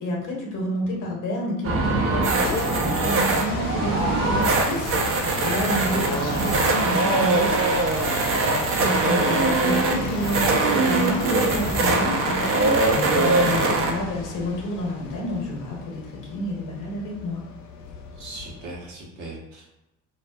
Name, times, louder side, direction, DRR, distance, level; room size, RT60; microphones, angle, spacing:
voice 1, 0.0-2.4 2.6-8.0 8.7-17.4, left 1 dB, 40° left, -1 dB, 0.9 m, -30 dB
sound 1, 1.6-13.9, right 3 dB, 30° right, 0.4 m, -22 dB
sound 2, 2.1-18.9, left 4 dB, 70° left, 0.6 m, -34 dB
voice 2, 18.2-19.7, right 2 dB, 65° right, -3 dB, 1.0 m, -39 dB
2.4 x 2.3 x 2.3 m, 0.94 s
hypercardioid pair, 60°, 46 cm